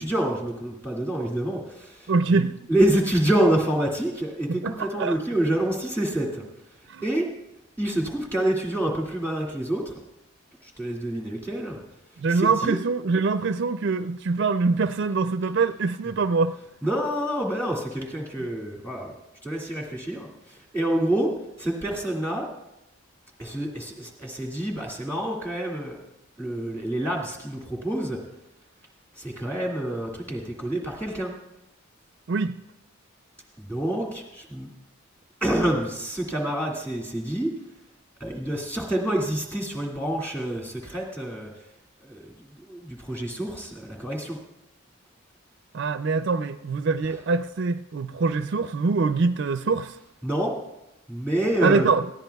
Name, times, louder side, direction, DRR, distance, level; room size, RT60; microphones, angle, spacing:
voice 1, 0.0-6.4 7.0-7.3 7.8-9.9 10.6-11.8 12.3-12.8 16.8-19.1 19.4-22.5 23.4-26.0 26.4-28.2 29.2-31.3 33.6-34.7 35.4-37.5 38.2-41.5 42.0-44.4 50.2-50.5 51.1-51.9, right 1 dB, 10° left, -1 dB, 2.0 m, -27 dB
voice 2, 2.1-2.6 4.5-5.2 6.9-7.0 12.2-16.6 32.3-32.6 45.7-50.0 51.6-52.0, right 4 dB, 55° right, 11 dB, 0.4 m, -24 dB
19.5 x 15.0 x 2.3 m, 0.90 s
head